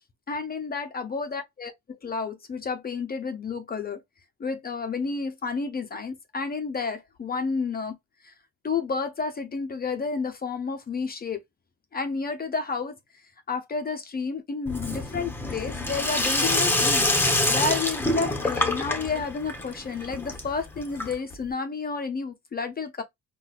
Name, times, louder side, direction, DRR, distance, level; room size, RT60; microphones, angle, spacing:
voice 1, 0.3-4.0 4.4-8.0 8.2-8.3 8.6-11.4 11.9-13.0 13.5-17.1 17.5-23.0, left 4 dB, 30° left, 0.5 m, -31 dB
Sink (filling or washing), 14.7-21.4, left 2 dB, 5° left, 0.8 m, -26 dB
3.9 x 2.3 x 2.4 m
cardioid pair, 90°, 30 cm